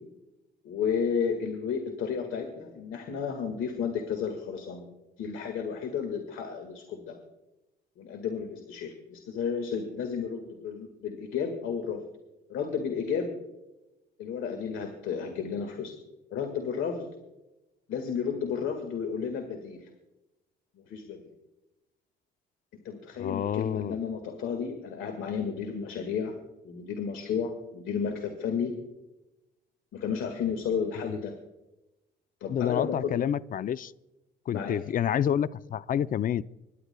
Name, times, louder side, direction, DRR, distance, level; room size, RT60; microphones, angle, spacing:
voice 1, 0.6-4.9 5.2-7.2 8.0-12.1 12.5-13.3 14.2-15.9 16.3-17.1 17.9-19.9 20.8-21.3 22.8-26.4 26.6-28.7 29.9-31.3 32.4-33.1 34.5-34.8, left 6 dB, 80° left, 5 dB, 1.8 m, -32 dB
voice 2, 23.2-24.0 31.1-31.2 32.5-33.9 34.5-36.4, left 9 dB, 45° left, 17 dB, 0.4 m, -28 dB
26.0 x 11.0 x 2.2 m, 0.99 s
cardioid pair, 90°, 20 cm